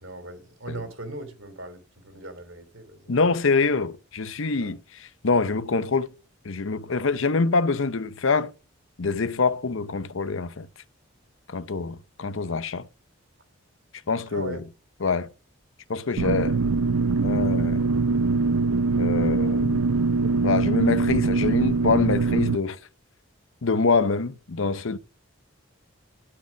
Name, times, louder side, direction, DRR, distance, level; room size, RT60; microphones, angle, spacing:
voice 1, 0.0-3.1 4.6-4.7 14.3-14.6, right 2 dB, 65° right, 2.8 m, -39 dB
voice 2, 3.1-6.1 6.4-8.5 9.0-10.7 11.5-12.9 14.1-14.6 15.0-15.3 15.9-16.6 17.2-17.8 19.0-19.8 20.4-22.8 23.6-25.0, left 4 dB, 65° left, 0.7 m, -25 dB
sound 1, 16.2-22.6, right 3 dB, 80° right, 0.5 m, -23 dB
12.5 x 4.9 x 7.0 m
head